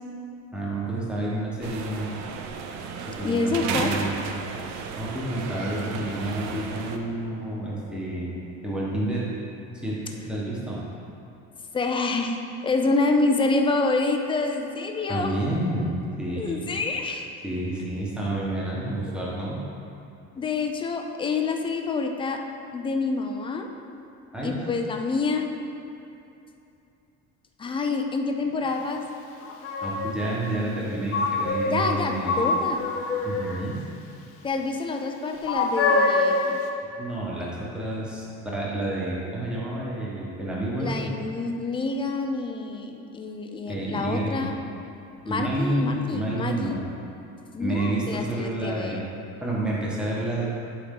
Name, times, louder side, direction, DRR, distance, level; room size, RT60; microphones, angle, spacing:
voice 1, 0.5-2.1 3.0-4.3 4.9-8.4 8.6-9.2 9.8-10.8 15.1-16.7 17.4-19.6 24.3-24.6 29.8-32.5 33.2-33.8 36.9-41.1 43.7-44.6 45.3-46.8 47.6-49.1 49.4-50.5, right 1 dB, 5° right, -6 dB, 1.1 m, -29 dB
sound 1, 1.6-7.0, right 5 dB, 60° right, 0.6 m, -34 dB
voice 2, 3.2-4.0 11.7-12.4 12.6-15.4 16.4-17.3 20.3-22.4 22.7-23.7 24.4-25.5 27.6-29.0 31.7-32.9 34.4-36.6 40.8-44.5 45.3-46.8 47.5-49.0, left 3 dB, 15° left, 3 dB, 0.3 m, -27 dB
Vicotrian street muffin vendor, 28.7-28.8 29.4-30.2 31.1-31.9 32.2-33.6 35.5-36.6, left 3 dB, 45° left, 0.7 m, -25 dB
11.5 x 4.2 x 3.7 m, 2.8 s
cardioid pair, 160°, 31 cm